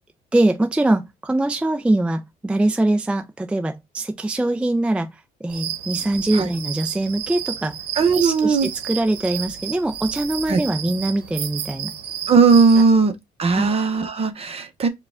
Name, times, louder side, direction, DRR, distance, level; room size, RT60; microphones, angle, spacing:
voice 1, 0.3-7.8 8.1-11.9 13.6-13.8, right 1 dB, 5° right, 0.4 m, -22 dB
sound 1, 5.5-12.9, right 10 dB, 75° right, 0.9 m, -32 dB
voice 2, 8.0-8.7 10.5-10.6 12.3-13.1 13.4-14.9, right 4 dB, 35° right, 0.8 m, -17 dB
4.6 x 2.3 x 3.5 m
cardioid pair, 110°, 17 cm